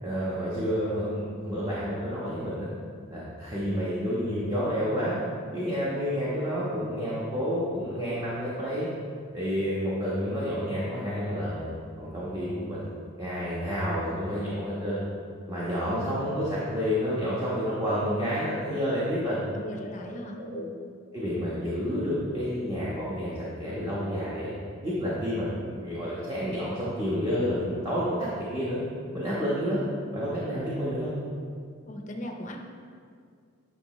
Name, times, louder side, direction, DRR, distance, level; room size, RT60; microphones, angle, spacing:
voice 1, 0.0-2.7 3.1-5.2 5.5-8.9 9.3-11.7 12.0-12.8 13.2-15.0 15.5-19.4 20.5-20.7 21.1-24.5 24.8-28.8 29.1-29.8 30.1-31.2, equal, 15° right, -9 dB, 1.2 m, -29 dB
voice 2, 19.5-20.7 31.9-32.6, equal, 35° left, 3 dB, 0.7 m, -38 dB
9.6 x 5.9 x 3.2 m, 2.2 s
head